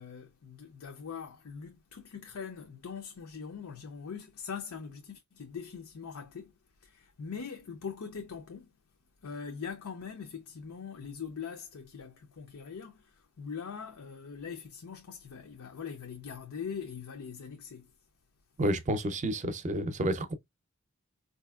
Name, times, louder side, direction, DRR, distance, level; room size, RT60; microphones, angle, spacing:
voice 1, 0.0-6.5 6.8-8.7 9.2-17.9, left 6 dB, 90° left, 0.6 m, -42 dB
voice 2, 18.6-20.3, right 1 dB, 35° right, 0.5 m, -30 dB
4.0 x 2.6 x 2.3 m
head